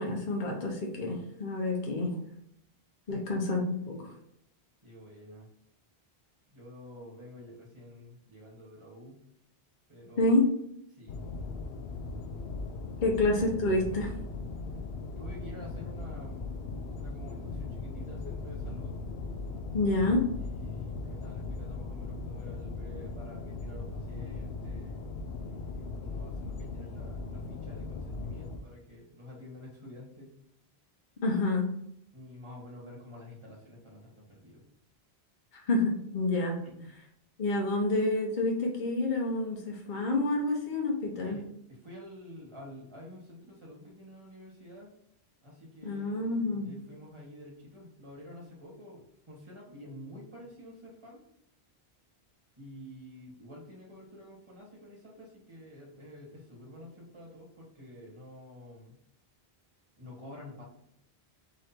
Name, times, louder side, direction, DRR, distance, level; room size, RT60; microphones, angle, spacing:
voice 1, 0.0-2.2 3.1-4.1 10.2-10.5 13.0-14.1 19.7-20.3 31.2-31.7 35.5-36.6 37.4-41.4 45.8-46.7, left 2 dB, 50° left, 0 dB, 1.0 m, -28 dB
voice 2, 4.8-5.5 6.5-9.2 9.9-10.3 10.9-11.3 15.2-16.6 16.9-18.9 20.5-25.1 25.4-30.3 32.1-34.6 36.6-36.9 41.2-44.9 45.4-51.2 52.6-59.0 60.0-60.6, left 1 dB, 30° right, -4 dB, 1.5 m, -49 dB
sound 1, 11.1-28.6, left 3 dB, 80° left, 0.8 m, -38 dB
3.8 x 3.2 x 4.3 m, 0.73 s
omnidirectional pair, 1.1 m